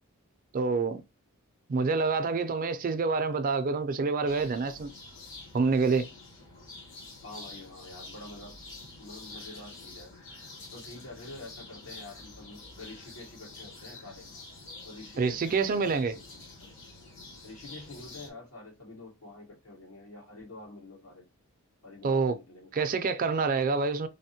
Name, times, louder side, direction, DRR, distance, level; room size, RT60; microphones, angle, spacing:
voice 1, 0.5-1.0 1.7-4.9 5.5-6.1 15.2-16.1 22.0-22.3 22.7-24.1, right 4 dB, 40° right, 0.3 m, -27 dB
sound 1, 4.2-18.3, left 3 dB, 55° left, 1.1 m, -47 dB
voice 2, 7.2-8.6 9.0-10.1 10.7-14.3 14.8-16.7 17.4-21.3 21.8-23.1, left 2 dB, 85° left, 1.7 m, -47 dB
3.4 x 2.1 x 2.7 m
head